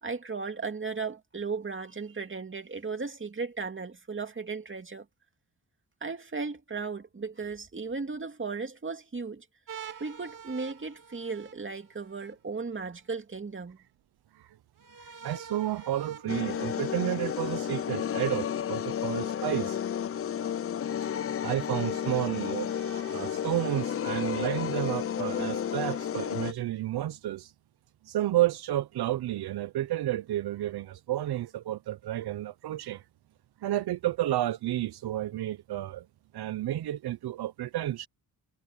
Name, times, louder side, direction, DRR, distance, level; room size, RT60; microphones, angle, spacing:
voice 1, 0.0-5.1 6.0-9.5 10.0-13.8, right 4 dB, 30° right, 2.5 m, -36 dB
sound 1, 9.7-12.3 14.8-17.8 19.1-20.0 20.8-20.9 22.5-24.5, right 7 dB, 55° right, 2.4 m, -48 dB
voice 2, 15.0-19.8 21.4-22.7 23.1-27.5 28.0-33.1 33.6-36.1 36.3-38.1, right 13 dB, 90° right, 0.7 m, -31 dB
sound 2, 16.3-26.5, left 9 dB, 40° left, 0.5 m, -32 dB
wide cardioid pair, 95°, 37 cm